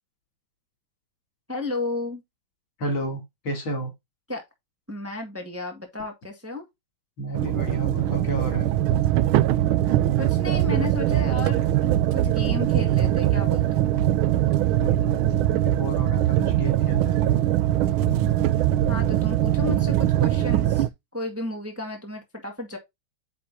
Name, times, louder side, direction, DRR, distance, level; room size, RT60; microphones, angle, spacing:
voice 1, 1.5-2.2 4.3-4.4 4.9-6.6 10.1-13.9 18.9-22.8, left 2 dB, 5° right, 1.7 m, -33 dB
voice 2, 2.8-3.9 7.2-8.7 14.7-17.4, right 1 dB, 65° left, 3.6 m, -32 dB
sound 1, 7.3-20.9, right 13 dB, 80° right, 1.4 m, -22 dB
9.1 x 4.3 x 2.7 m
omnidirectional pair, 2.3 m